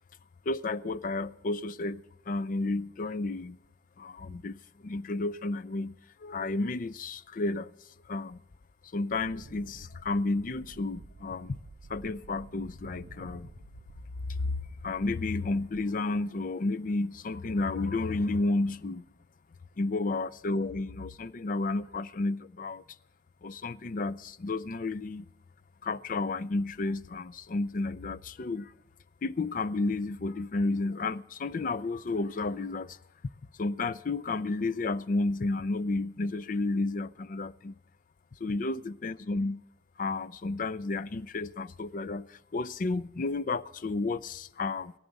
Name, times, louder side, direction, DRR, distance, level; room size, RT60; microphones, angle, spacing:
voice 1, 0.5-3.6 4.0-7.7 8.1-8.4 8.9-11.6 11.9-13.5 14.3-14.5 14.8-19.0 19.8-22.8 23.4-25.3 25.8-28.7 29.2-33.0 33.6-37.7 38.4-39.6 40.0-44.9, left 3 dB, 50° left, 0.5 m, -32 dB
Wind, 9.1-16.2, right 4 dB, 70° right, 0.5 m, -52 dB
18.0 x 15.0 x 4.1 m
head